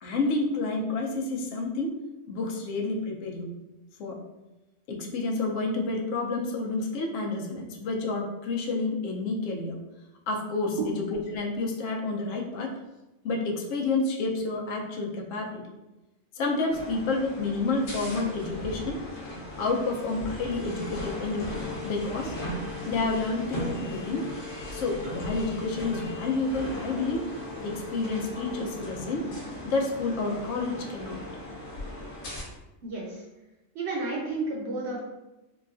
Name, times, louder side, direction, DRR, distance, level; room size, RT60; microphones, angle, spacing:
voice 1, 0.0-2.0 2.3-3.5 4.0-4.2 4.9-9.8 10.3-12.8 13.2-15.6 16.4-19.0 19.6-22.3 22.9-24.3 24.7-27.2 27.6-29.3 29.6-31.2, left 3 dB, 75° left, 0 dB, 0.9 m, -29 dB
sound 1, 16.7-32.4, left 1 dB, 60° left, 1.1 m, -37 dB
voice 2, 32.8-33.2 33.7-35.0, right 3 dB, 65° right, -2 dB, 0.8 m, -31 dB
3.9 x 2.3 x 2.4 m, 1.0 s
omnidirectional pair, 1.4 m